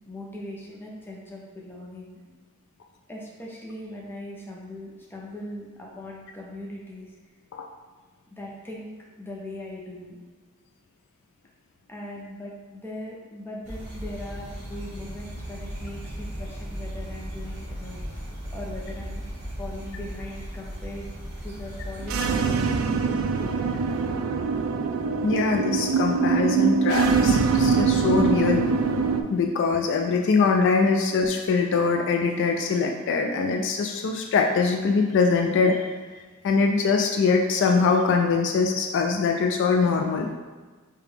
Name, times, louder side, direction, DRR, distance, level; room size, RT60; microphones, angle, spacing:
voice 1, 0.0-2.3 3.1-7.1 8.3-10.2 11.9-18.2 18.5-19.2 19.6-21.1 21.4-24.1, left 1 dB, 10° left, -3 dB, 0.6 m, -39 dB
sound 1, 13.6-22.2, equal, 55° right, 1.1 m, -36 dB
sound 2, 22.0-29.2, right 5 dB, 85° right, 0.3 m, -23 dB
voice 2, 25.2-28.7 29.3-35.8 36.4-40.3, left 4 dB, 60° left, 3 dB, 0.3 m, -22 dB
4.9 x 2.3 x 3.2 m, 1.4 s
head